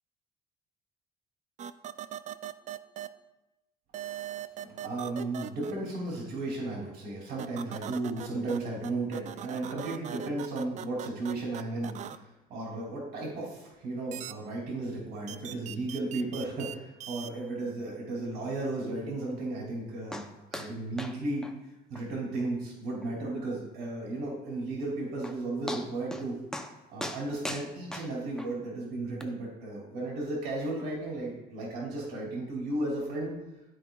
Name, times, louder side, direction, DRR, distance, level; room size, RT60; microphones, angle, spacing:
sound 1, 1.6-3.1 3.9-5.7 7.4-8.6 8.8-12.2 14.1-14.3 15.3-16.8 17.0-17.3, right 10 dB, 45° right, 0.4 m, -40 dB
voice 1, 4.6-20.3 20.5-21.5 21.9-26.4 26.9-33.3, right 2 dB, 65° right, -3 dB, 2.6 m, -34 dB
sound 2, 20.1-20.3 20.5-20.7 21.0-21.2 21.4-21.5 22.0-22.1 22.5-22.6 23.0-23.1 24.8-24.9 25.2-25.4 25.7-26.3 26.5-26.7 27.0-28.5 29.2-29.3, left 1 dB, 5° left, 0.5 m, -38 dB
12.0 x 4.7 x 2.3 m, 0.99 s
cardioid pair, 110°, 17 cm